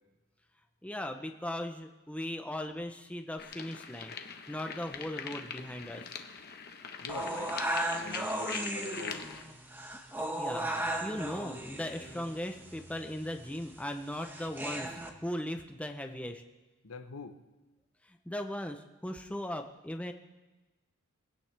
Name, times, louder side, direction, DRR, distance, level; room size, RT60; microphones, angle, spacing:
voice 1, 0.8-6.2 10.4-10.7 11.0-16.4 18.0-20.1, left 1 dB, 5° left, 5 dB, 0.6 m, -38 dB
sound 1, 3.4-9.4, left 6 dB, 45° left, 1.1 m, -43 dB
voice 2, 7.0-7.6 8.0-9.3 16.8-17.4, left 4 dB, 70° left, 8 dB, 1.0 m, -44 dB
sound 2, 7.1-15.1, right 1 dB, 10° right, 1.1 m, -36 dB
22.5 x 16.5 x 3.4 m, 1.2 s
head